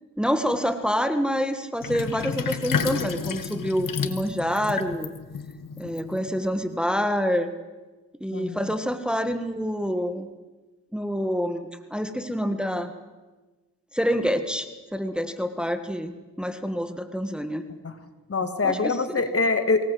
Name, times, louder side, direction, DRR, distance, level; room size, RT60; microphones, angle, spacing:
voice 1, 0.2-5.1 5.8-7.5 8.2-10.3 10.9-12.9 13.9-14.7 14.9-17.6 18.6-19.2, equal, 5° right, 8 dB, 1.7 m, -27 dB
Sink (filling or washing), 1.8-6.5, left 6 dB, 70° left, 1.7 m, -31 dB
voice 2, 8.3-8.6 17.8-17.9 18.3-19.8, left 3 dB, 40° left, 9 dB, 2.4 m, -24 dB
23.5 x 19.0 x 7.9 m, 1.2 s
cardioid pair, 70°, 34 cm